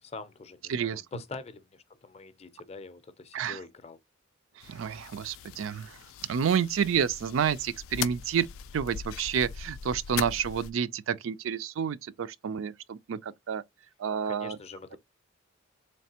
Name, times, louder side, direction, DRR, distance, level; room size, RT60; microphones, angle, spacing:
voice 1, 0.0-4.0 14.2-15.0, left 3 dB, 30° left, 0.5 m, -44 dB
voice 2, 0.7-1.0 3.3-3.6 4.7-6.0 6.3-8.5 8.7-13.6 14.0-14.6, right 7 dB, 75° right, 0.4 m, -29 dB
sound 1, 4.6-10.7, left 9 dB, 90° left, 0.3 m, -40 dB
4.1 x 3.2 x 2.8 m
head